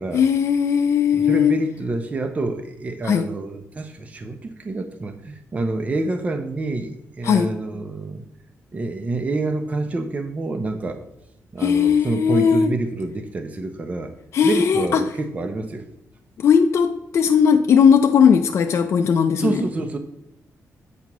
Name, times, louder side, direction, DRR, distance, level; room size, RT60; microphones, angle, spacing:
voice 1, 0.1-1.5 3.0-3.3 7.2-7.5 11.6-12.7 14.3-15.0 16.4-19.6, left 7 dB, 55° left, 6 dB, 0.4 m, -17 dB
voice 2, 1.1-8.2 8.7-11.0 11.5-14.1 14.4-15.9 19.4-20.0, right 2 dB, 25° right, 6 dB, 0.5 m, -27 dB
8.1 x 2.9 x 5.9 m, 0.83 s
wide cardioid pair, 145°, 6 cm